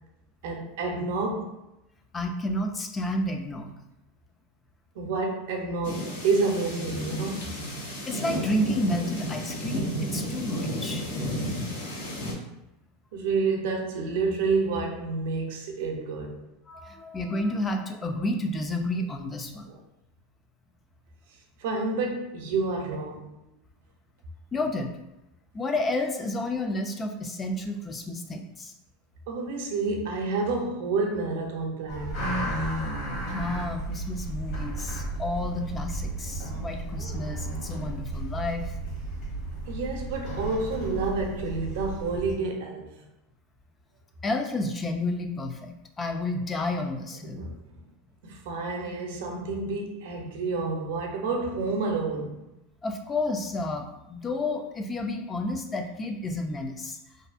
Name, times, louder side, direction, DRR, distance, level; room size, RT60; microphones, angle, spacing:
voice 1, 0.4-1.5 5.0-7.5 13.1-16.5 19.7-19.8 21.6-23.4 29.3-32.3 39.7-43.0 47.2-47.5 48.2-52.4, right 3 dB, 75° right, 2 dB, 0.5 m, -29 dB
voice 2, 2.1-3.7 8.1-11.0 16.7-19.7 24.5-24.9 25.5-28.7 33.3-38.7 44.2-47.4 52.8-57.0, left 1 dB, 20° left, 5 dB, 0.3 m, -31 dB
sound 1, 5.8-12.3, equal, 85° left, 0.8 m, -32 dB
sound 2, 31.9-42.3, right 1 dB, 55° left, 1.2 m, -33 dB
2.6 x 2.4 x 2.4 m, 0.92 s
supercardioid pair, 120°, 0 cm